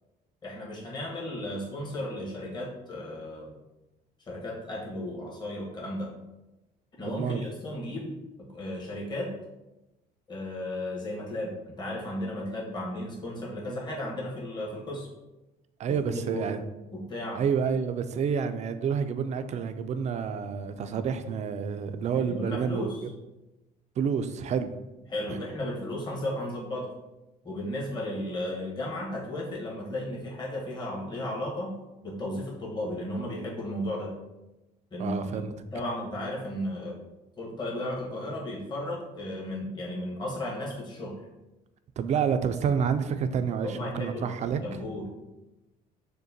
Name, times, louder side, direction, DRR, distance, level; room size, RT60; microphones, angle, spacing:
voice 1, 0.4-3.6 4.3-6.1 7.0-9.3 10.3-15.1 16.0-16.5 16.9-17.4 22.1-23.0 25.1-26.9 27.4-31.8 32.0-34.1 34.9-35.5 35.7-36.9 37.4-41.2 43.6-44.3 44.6-45.1, left 1 dB, 25° left, -4 dB, 1.2 m, -34 dB
voice 2, 7.0-7.4 15.8-16.6 17.3-22.9 24.0-24.7 25.3-25.4 35.0-35.5 42.0-44.8, right 7 dB, 45° right, 10 dB, 0.4 m, -29 dB
6.3 x 2.2 x 2.7 m, 1.0 s
cardioid pair, 110°, 17 cm